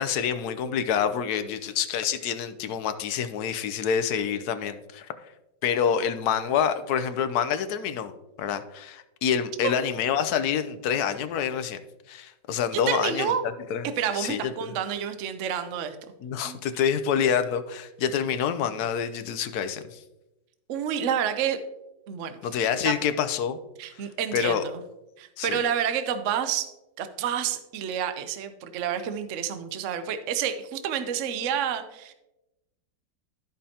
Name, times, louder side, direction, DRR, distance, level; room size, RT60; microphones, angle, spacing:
voice 1, 0.0-5.1 5.6-8.1 8.4-11.8 12.1-13.4 13.7-13.9 14.1-14.7 16.2-20.0 22.4-23.6 23.9-24.0 24.3-24.6 25.4-25.6, left 8 dB, 70° left, 10 dB, 1.0 m, -27 dB
voice 2, 12.9-13.4 14.0-16.0 16.4-16.6 20.7-21.6 22.1-22.4 22.8-22.9 23.8-24.8 25.2-26.7 27.0-32.1, right 8 dB, 65° right, 9 dB, 0.7 m, -29 dB
13.5 x 5.2 x 2.8 m, 0.95 s
omnidirectional pair, 2.0 m